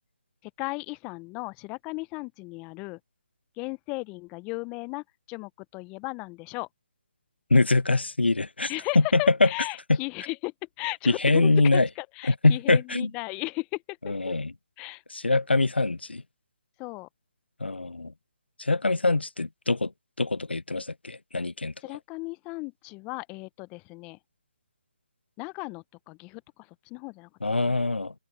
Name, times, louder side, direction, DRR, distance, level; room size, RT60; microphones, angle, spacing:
voice 1, 0.6-3.0 3.6-6.7 8.7-10.5 10.8-14.3 14.8-15.0 16.8-17.1 21.8-24.2 25.4-26.4 26.9-27.3 27.6-27.8, left 27 dB, 20° left, 0.6 m, -36 dB
voice 2, 7.5-9.5 9.9-10.0 11.1-11.9 12.3-13.1 14.0-14.5 15.1-16.2 17.6-18.1 18.6-19.9 20.2-21.7 27.4-28.1, left 3 dB, 90° left, 0.5 m, -23 dB
open air
figure-of-eight pair, 145°, 6 cm